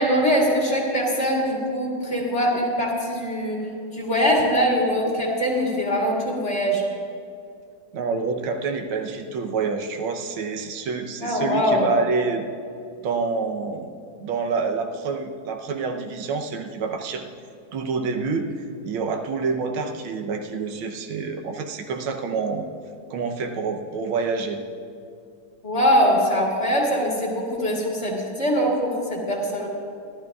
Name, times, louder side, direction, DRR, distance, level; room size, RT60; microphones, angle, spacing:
voice 1, 0.0-6.8 11.2-11.9 25.6-29.7, equal, 35° left, -3 dB, 2.3 m, -22 dB
voice 2, 7.9-12.5 13.0-13.9 14.2-17.2 17.7-18.5 18.8-22.7 23.1-24.6, right 4 dB, 90° right, 4 dB, 1.7 m, -27 dB
25.5 x 12.0 x 2.4 m, 2.4 s
omnidirectional pair, 2.2 m